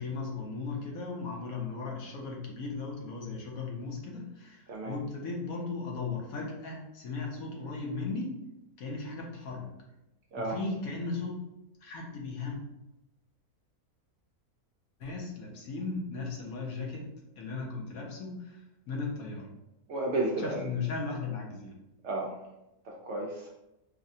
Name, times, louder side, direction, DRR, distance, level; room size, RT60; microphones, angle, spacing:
voice 1, 0.0-8.3 8.8-9.7 10.4-11.4 11.8-12.6 15.0-17.1 17.4-18.6 18.9-19.5 20.4-21.7, left 4 dB, 75° left, -1 dB, 1.2 m, -36 dB
voice 2, 19.9-20.7 22.0-22.3 22.9-23.5, right 2 dB, 65° right, -2 dB, 0.7 m, -32 dB
4.8 x 2.1 x 2.7 m, 0.91 s
omnidirectional pair, 1.6 m